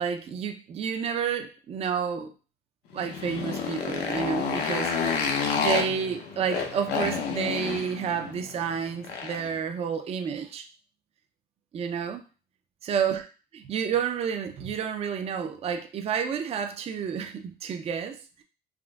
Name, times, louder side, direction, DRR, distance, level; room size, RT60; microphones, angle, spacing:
voice 1, 0.0-2.3 2.9-5.3 5.6-10.7 11.7-12.2 12.8-13.2 13.5-18.4, right 7 dB, 35° right, 6 dB, 0.4 m, -30 dB
Motorcycle, 2.9-9.6, left 6 dB, 90° left, 0.6 m, -30 dB
3.6 x 2.4 x 2.2 m, 0.35 s
cardioid pair, 110°, 17 cm